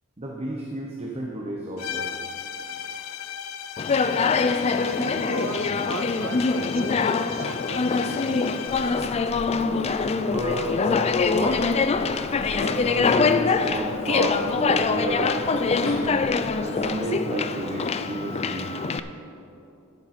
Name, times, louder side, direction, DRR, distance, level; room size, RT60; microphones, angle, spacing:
voice 1, 0.2-2.1 9.6-9.9 10.2-11.6 12.5-16.3 16.6-18.7, right 1 dB, 30° right, -1 dB, 0.9 m, -31 dB
sound 1, 1.8-9.2, left 8 dB, 90° left, 0.5 m, -36 dB
Conversation, 3.8-19.0, left 4 dB, 30° left, 0.3 m, -24 dB
voice 2, 4.0-4.4 4.8-8.5, right 2 dB, 70° right, 7 dB, 0.8 m, -36 dB
sound 2, 8.7-16.9, left 1 dB, 65° left, 1.7 m, -44 dB
10.5 x 10.5 x 4.3 m, 2.8 s
head